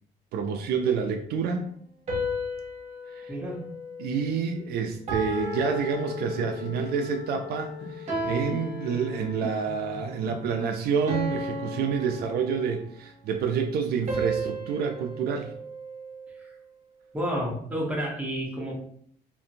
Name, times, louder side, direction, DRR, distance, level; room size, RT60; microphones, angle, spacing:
voice 1, 0.3-1.7 3.1-3.3 4.0-15.5, right 6 dB, 70° right, 5 dB, 0.4 m, -28 dB
sound 1, 2.1-4.6 5.1-6.8 8.1-9.6 11.1-12.9 14.1-16.4, equal, 40° right, 0.9 m, -34 dB
voice 2, 3.3-3.7 16.4-16.5 17.1-18.7, equal, 10° right, -3 dB, 0.9 m, -30 dB
Wind instrument woodwind instrument, 5.3-10.4, left 10 dB, 85° left, 0.6 m, -41 dB
sound 2, 6.0-10.7 11.0-11.8, left 3 dB, 55° left, 1.0 m, -43 dB
2.6 x 2.5 x 2.7 m, 0.65 s
cardioid pair, 110°, 17 cm